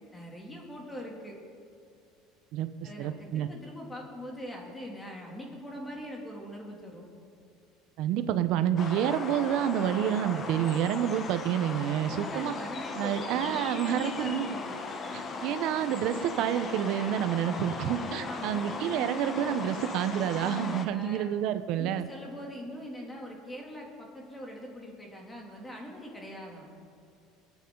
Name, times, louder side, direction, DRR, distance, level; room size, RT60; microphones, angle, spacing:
voice 1, 0.1-1.4 2.8-7.0 12.0-14.8 18.2-18.7 20.9-21.3 21.8-26.7, equal, 10° left, -1 dB, 2.8 m, -42 dB
voice 2, 3.0-3.5 8.0-12.5 12.9-14.6 15.1-22.1, right 10 dB, 60° right, 11 dB, 0.9 m, -29 dB
sound 1, 8.8-20.9, left 3 dB, 30° left, 1.1 m, -37 dB
27.5 x 9.4 x 4.0 m, 2.5 s
cardioid pair, 140°, 0 cm